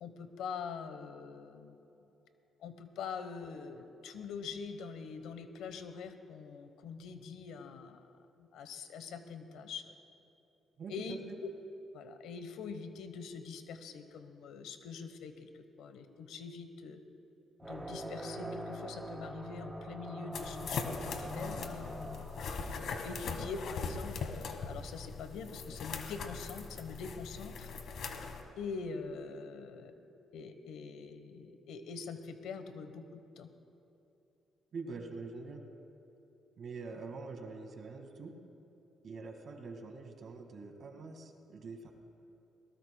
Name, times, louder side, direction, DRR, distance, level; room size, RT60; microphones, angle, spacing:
voice 1, 0.0-1.8 2.6-8.0 8.4-9.9 10.9-11.5 11.9-17.0 17.6-22.3 22.7-27.7 28.6-29.9 30.3-33.5, left 5 dB, 85° left, 8 dB, 1.1 m, -44 dB
voice 2, 10.8-11.4 34.7-35.6 36.6-38.3 39.0-41.9, right 4 dB, 55° right, 4 dB, 1.9 m, -45 dB
sound 1, 17.6-23.8, right 1 dB, 15° right, 2.3 m, -44 dB
sound 2, 20.3-28.4, left 5 dB, 70° left, 1.4 m, -40 dB
22.0 x 19.0 x 2.3 m, 2.9 s
cardioid pair, 90°, 0 cm